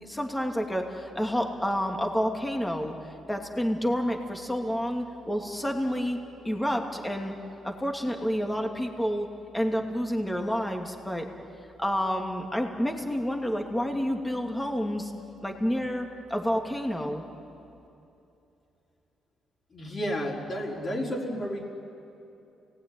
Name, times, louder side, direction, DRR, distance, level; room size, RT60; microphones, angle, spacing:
voice 1, 0.0-2.9 3.3-6.2 6.4-7.3 7.6-9.3 9.5-11.3 11.8-15.1 15.4-17.2, equal, 10° left, 2 dB, 2.6 m, -29 dB
voice 2, 19.7-21.7, equal, 40° left, -4 dB, 4.5 m, -31 dB
29.5 x 19.0 x 9.8 m, 2.8 s
cardioid pair, 100°, 0 cm